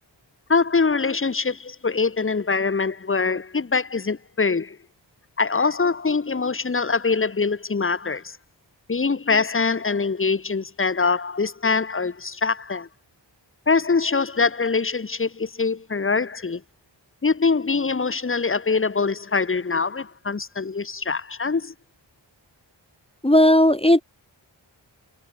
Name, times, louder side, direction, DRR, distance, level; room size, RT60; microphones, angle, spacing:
voice 1, 0.5-4.8 5.4-8.4 8.9-12.9 13.7-16.6 17.2-21.7, left 4 dB, 30° left, 0.8 m, -23 dB
voice 2, 23.2-24.0, left 1 dB, 15° left, 1.1 m, -15 dB
wide cardioid pair, 55°, 45 cm